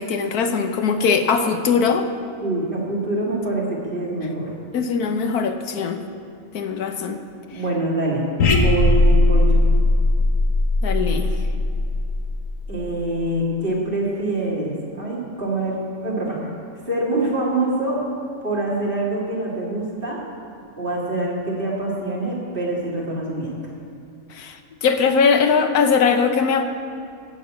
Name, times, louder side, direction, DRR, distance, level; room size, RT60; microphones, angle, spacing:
voice 1, 0.0-2.1 4.7-6.0 6.5-7.2 7.5-7.6 10.8-11.3 24.3-26.6, left 5 dB, 85° left, 6 dB, 1.4 m, -20 dB
voice 2, 2.4-4.5 7.5-8.2 8.5-9.6 12.7-16.4 16.9-18.1 18.4-20.2 20.8-23.7, right 2 dB, 35° right, -5 dB, 2.7 m, -25 dB
sound 1, 8.4-13.0, left 2 dB, 60° left, 1.5 m, -18 dB
14.5 x 6.5 x 8.3 m, 2.4 s
omnidirectional pair, 1.6 m